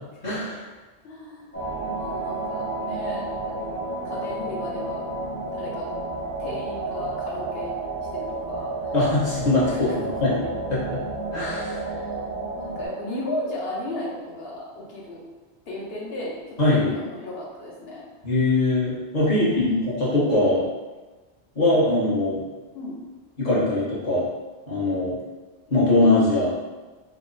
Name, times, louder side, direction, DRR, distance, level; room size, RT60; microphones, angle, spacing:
voice 1, 0.2-0.6 8.9-11.0 11.3-11.8 16.6-16.9 18.2-20.6 21.5-22.4 23.4-24.3 24.7-25.2 25.7-26.6, left 2 dB, 40° left, -8 dB, 1.1 m, -22 dB
voice 2, 1.0-1.6 1.9-3.2 4.0-5.1 5.5-5.9 6.4-7.7 8.1-8.9 9.7-10.0 11.8-12.3 12.6-15.2 15.7-16.3 16.7-18.0 19.2-19.8 22.7-23.0, left 1 dB, 60° left, -3 dB, 1.0 m, -35 dB
sound 1, 1.5-12.9, right 2 dB, 15° left, 0.6 m, -31 dB
3.4 x 2.0 x 3.8 m, 1.2 s
omnidirectional pair, 1.2 m